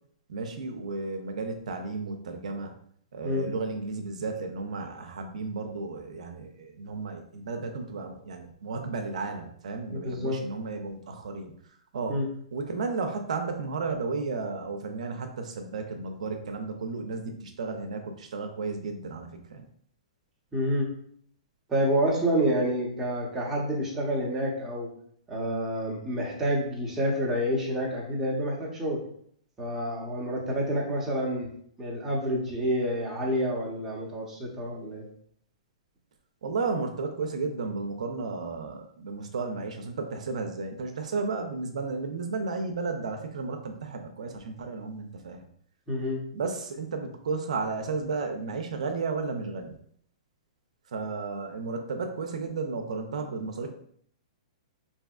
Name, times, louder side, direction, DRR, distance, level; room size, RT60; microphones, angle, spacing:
voice 1, 0.3-2.7 3.1-11.5 11.9-12.2 12.5-19.6 36.4-45.4 46.3-49.8 50.9-53.7, right 4 dB, 80° right, 4 dB, 0.5 m, -33 dB
voice 2, 9.9-10.4 12.1-12.3 20.5-20.9 21.7-24.9 25.3-29.0 29.6-31.5 31.8-35.1 45.9-46.2, equal, 10° right, -3 dB, 0.8 m, -28 dB
3.4 x 2.7 x 2.3 m, 0.63 s
hypercardioid pair, 145°, 4 cm